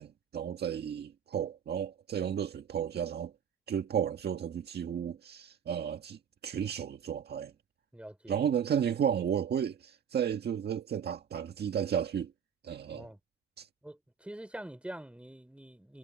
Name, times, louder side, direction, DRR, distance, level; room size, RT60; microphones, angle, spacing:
voice 1, 0.0-3.3 3.7-7.5 8.3-12.3 12.6-13.1 13.6-13.7, right 8 dB, 55° right, 1.7 m, -33 dB
voice 2, 7.9-8.4 12.9-13.2 13.8-16.0, right 1 dB, 5° right, 5.4 m, -45 dB
cardioid pair, 90°, 20 cm